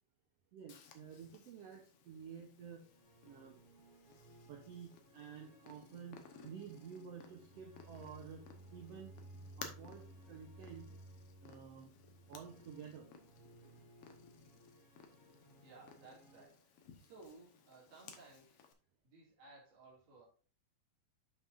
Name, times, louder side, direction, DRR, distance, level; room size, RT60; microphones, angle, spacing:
voice 1, 0.5-2.9 3.2-3.6 4.1-4.2 4.5-9.2 9.6-10.9 11.4-11.9 12.3-13.1, right 7 dB, 85° right, 4 dB, 1.4 m, -51 dB
Purr, 0.7-18.7, left 6 dB, 70° left, 1.4 m, -58 dB
sound 1, 2.6-16.5, right 1 dB, 30° right, 2.5 m, -59 dB
voice 2, 15.4-18.7 19.0-20.2, right 3 dB, 65° right, -4 dB, 3.9 m, -59 dB
10.0 x 5.7 x 2.5 m, 0.39 s
omnidirectional pair, 4.1 m